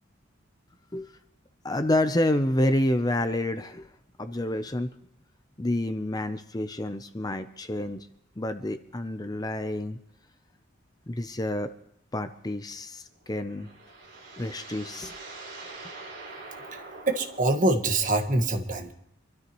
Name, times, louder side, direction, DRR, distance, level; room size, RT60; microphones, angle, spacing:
voice 1, 1.6-3.9 4.2-4.9 5.6-8.1 8.4-10.0 11.1-11.7 12.1-13.7 14.4-15.1, left 1 dB, 20° left, 9 dB, 0.6 m, -28 dB
sound 1, 13.2-18.4, right 3 dB, 60° right, 4.8 m, -44 dB
voice 2, 17.1-18.9, right 2 dB, 40° right, 5 dB, 1.6 m, -24 dB
26.5 x 13.0 x 3.1 m, 0.71 s
head